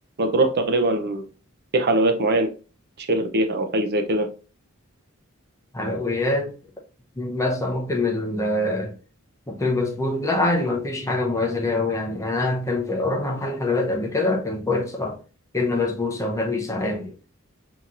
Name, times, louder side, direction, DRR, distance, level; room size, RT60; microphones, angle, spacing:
voice 1, 0.2-1.3 1.7-2.5 3.0-4.3, right 2 dB, 50° right, 0.6 m, -21 dB
voice 2, 5.7-6.5 7.2-8.9 9.5-15.2 15.5-17.1, left 2 dB, 15° left, 0.7 m, -24 dB
5.5 x 2.9 x 2.4 m
head